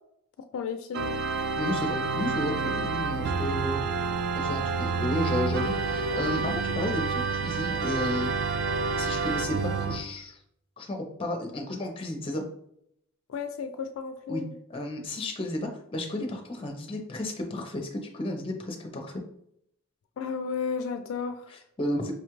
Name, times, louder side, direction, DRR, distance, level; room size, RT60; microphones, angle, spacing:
voice 1, 0.5-1.2 13.3-14.5 20.2-21.5, left 6 dB, 70° left, 8 dB, 0.3 m, -33 dB
Organ, 0.9-10.0, right 4 dB, 55° right, 0.3 m, -29 dB
voice 2, 1.6-3.8 4.4-8.3 8.9-10.4 10.8-12.4 14.3-14.4 14.7-19.2 21.5-22.1, left 1 dB, 25° left, 3 dB, 0.6 m, -32 dB
5.0 x 2.3 x 3.0 m, 0.73 s
head